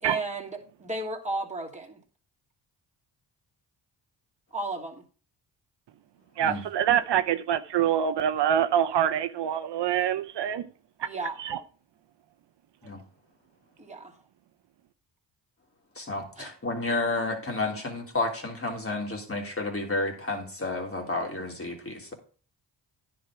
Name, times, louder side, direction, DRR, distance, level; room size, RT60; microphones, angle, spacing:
voice 1, 0.0-2.0 4.5-5.0 11.0-11.4 13.8-14.2 16.4-16.5 17.7-17.8, right 2 dB, 15° right, 2.7 m, -34 dB
voice 2, 6.4-10.7 11.4-11.6, right 9 dB, 60° right, 0.8 m, -25 dB
voice 3, 15.9-22.1, left 2 dB, 30° left, 3.2 m, -31 dB
10.0 x 6.1 x 4.9 m
supercardioid pair, 55°, 47 cm